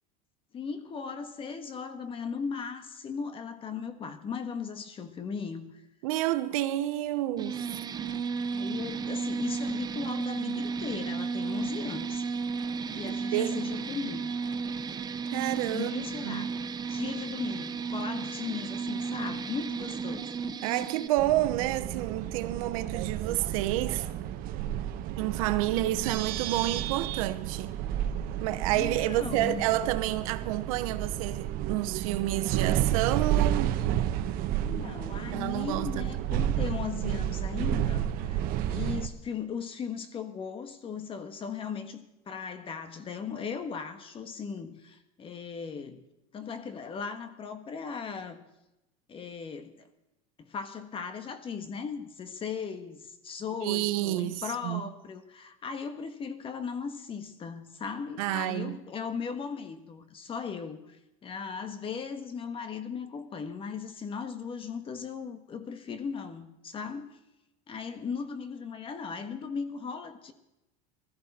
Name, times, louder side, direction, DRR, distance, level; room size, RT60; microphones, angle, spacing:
voice 1, 0.5-5.8 8.5-12.3 12.9-14.3 15.7-20.3 28.8-29.7 34.6-46.0 46.3-48.4 49.1-49.9 50.4-61.0 61.2-67.2 67.7-70.3, left 6 dB, 30° left, 1.5 m, -37 dB
voice 2, 6.0-7.7 13.1-13.6 15.3-16.5 20.6-24.1 25.2-27.8 28.4-33.8 35.3-36.1 53.6-54.8 58.2-58.8, right 15 dB, 80° right, 0.9 m, -29 dB
sound 1, 7.4-21.1, right 5 dB, 25° right, 0.7 m, -33 dB
sound 2, 21.2-39.1, right 11 dB, 55° right, 1.0 m, -31 dB
20.0 x 13.5 x 4.3 m
supercardioid pair, 120°, 18 cm